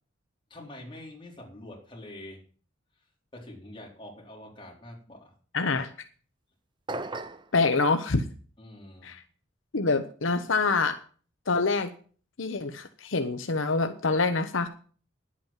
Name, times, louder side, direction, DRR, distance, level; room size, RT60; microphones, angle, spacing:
voice 1, 0.5-2.4 3.3-5.3 5.6-5.7 8.6-9.1, left 1 dB, 25° left, -2 dB, 4.1 m, -45 dB
voice 2, 5.5-5.9 7.5-8.2 9.0-9.2 9.7-10.9 11.5-11.9 12.4-14.7, left 3 dB, 75° left, 8 dB, 0.9 m, -26 dB
sound 1, 6.9-7.5, right 2 dB, 25° right, 0.7 m, -35 dB
10.5 x 8.5 x 7.4 m, 0.42 s
head